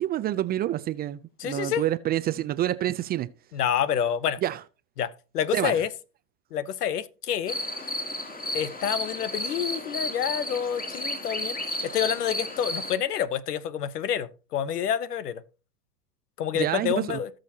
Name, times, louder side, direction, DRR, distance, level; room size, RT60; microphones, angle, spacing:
voice 1, 0.0-3.3 4.4-4.6 5.5-5.8 16.5-17.2, right 13 dB, 25° right, 0.4 m, -27 dB
voice 2, 1.4-1.8 3.5-4.4 5.0-5.9 6.5-7.6 8.5-11.6 11.8-15.4 16.4-17.3, left 9 dB, 90° left, 1.0 m, -28 dB
sound 1, 7.5-13.0, left 1 dB, 20° left, 2.7 m, -32 dB
17.5 x 6.4 x 2.8 m
hypercardioid pair, 105°, 46 cm